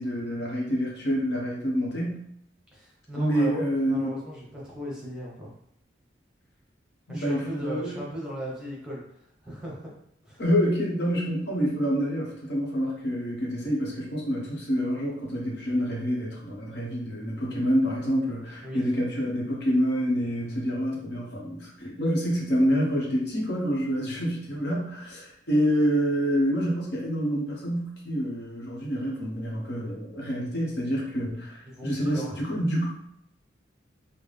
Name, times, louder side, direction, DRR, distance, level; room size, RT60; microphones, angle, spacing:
voice 1, 0.0-2.2 3.2-4.1 7.1-8.1 10.4-33.0, equal, 65° left, -3 dB, 1.0 m, -27 dB
voice 2, 2.7-5.5 7.1-9.0 9.4-9.8 10.3-10.4 18.6-18.9 31.6-32.6, equal, 5° right, -6 dB, 1.0 m, -37 dB
3.9 x 2.1 x 3.4 m, 0.73 s
head